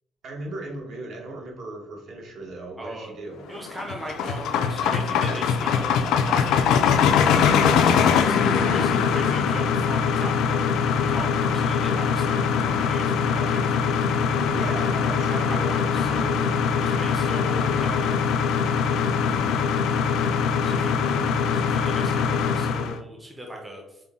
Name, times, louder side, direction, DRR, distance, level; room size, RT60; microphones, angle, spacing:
voice 1, 0.2-3.5 14.5-15.8, right 2 dB, 55° right, 0 dB, 1.0 m, -37 dB
voice 2, 2.8-3.1 3.5-7.3 8.1-10.6 11.1-14.3 15.1-18.4 20.6-21.1 21.5-24.0, right 1 dB, 10° right, 0 dB, 0.5 m, -39 dB
sound 1, 3.6-23.0, left 6 dB, 80° left, 0.3 m, -22 dB
5.3 x 2.1 x 3.5 m, 0.91 s
cardioid pair, 165°, 0 cm